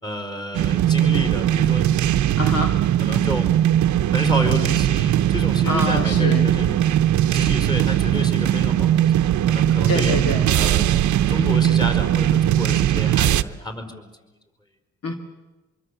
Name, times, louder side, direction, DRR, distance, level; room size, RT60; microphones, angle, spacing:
voice 1, 0.0-1.9 3.0-3.5 4.1-6.9 7.3-10.2 10.5-10.9 11.3-14.1, equal, 15° left, 5 dB, 4.9 m, -30 dB
sound 1, 0.5-13.4, right 11 dB, 70° right, 0.9 m, -19 dB
voice 2, 2.4-2.7 5.7-6.5 9.9-10.5 15.0-15.1, left 2 dB, 55° left, 4 dB, 2.5 m, -25 dB
25.0 x 23.5 x 8.1 m, 1.2 s
cardioid pair, 90°, 30 cm